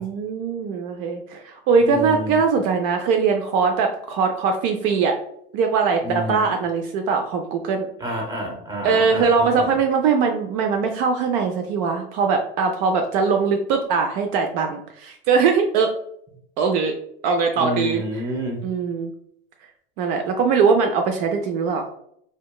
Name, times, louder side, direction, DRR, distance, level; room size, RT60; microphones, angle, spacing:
voice 1, 0.0-5.2 5.5-7.9 8.8-15.9 16.6-16.9 17.2-18.0 18.6-19.1 20.0-21.9, right 5 dB, 60° right, 4 dB, 0.4 m, -21 dB
voice 2, 1.8-2.4 6.0-6.4 8.0-9.8 17.6-18.6, equal, 10° right, 0 dB, 0.8 m, -29 dB
2.8 x 2.2 x 2.2 m, 0.70 s
hypercardioid pair, 105°, 31 cm